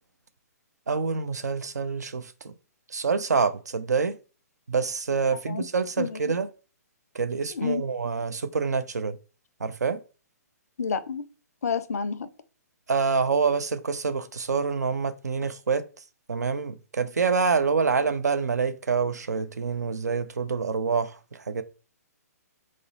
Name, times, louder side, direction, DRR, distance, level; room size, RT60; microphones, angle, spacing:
voice 1, 0.9-2.5 2.9-4.2 4.7-6.5 7.1-9.2 9.6-10.0 12.9-15.8 16.3-21.6, right 5 dB, 80° right, 0.4 m, -26 dB
voice 2, 5.3-5.6 6.0-6.3 7.5-7.8 10.8-11.2 11.6-12.3, left 5 dB, 70° left, 0.4 m, -29 dB
2.4 x 2.1 x 3.9 m
figure-of-eight pair, 125°, 9 cm